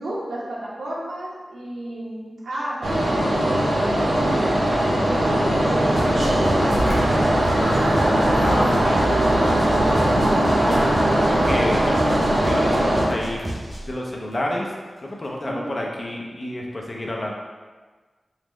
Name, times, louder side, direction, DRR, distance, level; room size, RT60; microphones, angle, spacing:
voice 1, 0.0-7.5 15.4-15.8, right 1 dB, 90° right, -6 dB, 1.1 m, -33 dB
sound 1, 2.8-13.0, right 1 dB, 65° right, 0.9 m, -20 dB
sound 2, 4.1-15.3, left 1 dB, 80° left, 0.8 m, -36 dB
sound 3, 6.0-14.0, right 1 dB, 35° right, 0.7 m, -32 dB
voice 2, 8.4-10.1 10.6-13.4 13.9-14.7 15.0-17.3, left 1 dB, 35° left, -1 dB, 0.6 m, -30 dB
4.1 x 3.0 x 3.1 m, 1.4 s
wide cardioid pair, 115°, 0 cm